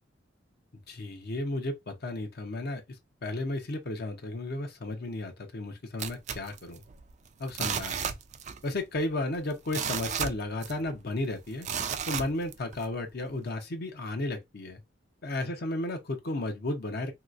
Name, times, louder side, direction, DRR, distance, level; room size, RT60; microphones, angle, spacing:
voice 1, 0.9-2.8 3.2-6.8 7.4-8.1 8.6-11.7 12.1-14.8 15.2-17.1, left 2 dB, 55° left, 0.7 m, -33 dB
sound 1, 6.0-7.1 7.5-8.7 9.0-9.1 9.5-11.0 11.6-12.8 13.3-13.4, right 7 dB, 40° right, 0.4 m, -33 dB
3.1 x 2.8 x 2.4 m
head